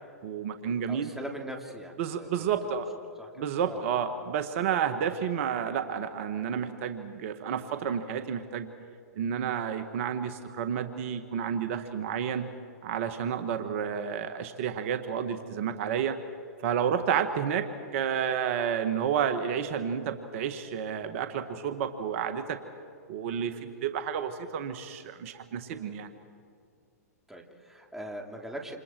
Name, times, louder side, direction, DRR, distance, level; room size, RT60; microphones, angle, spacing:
voice 1, 0.2-1.1 2.0-2.9 3.4-8.7 9.2-12.5 12.8-16.2 16.6-22.6 23.1-26.1, right 8 dB, 55° right, 8 dB, 1.6 m, -30 dB
voice 2, 0.9-2.5 3.2-3.3 3.6-3.8 25.7-25.9 27.3-28.8, right 1 dB, 5° right, 1 dB, 3.2 m, -41 dB
28.5 x 28.0 x 4.6 m, 2.3 s
hypercardioid pair, 120°, 9 cm